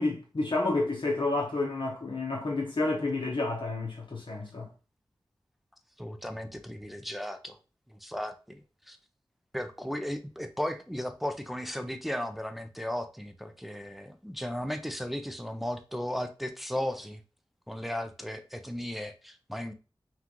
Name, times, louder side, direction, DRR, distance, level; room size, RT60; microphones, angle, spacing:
voice 1, 0.0-4.7, left 2 dB, 65° left, 1.0 m, -30 dB
voice 2, 6.0-7.6 7.9-8.6 8.9-9.0 9.5-17.2 17.7-19.7, equal, ahead, 0.5 m, -35 dB
5.9 x 2.4 x 3.0 m
wide cardioid pair, 70°, 9 cm